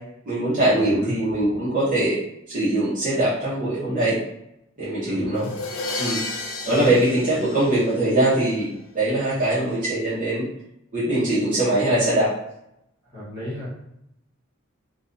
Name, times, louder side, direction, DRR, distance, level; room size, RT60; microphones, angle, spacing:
voice 1, 0.3-2.2 2.5-4.2 4.8-5.5 6.0-6.2 6.6-8.7 8.9-10.5 10.9-12.3, right 1 dB, 40° right, -10 dB, 0.7 m, -22 dB
voice 2, 0.8-1.2 5.0-5.5 6.6-6.9 7.3-7.4 13.1-13.7, left 1 dB, 25° right, -10 dB, 1.2 m, -32 dB
sound 1, 5.4-8.3, left 2 dB, 80° left, 0.4 m, -32 dB
2.5 x 2.2 x 2.5 m, 0.82 s
head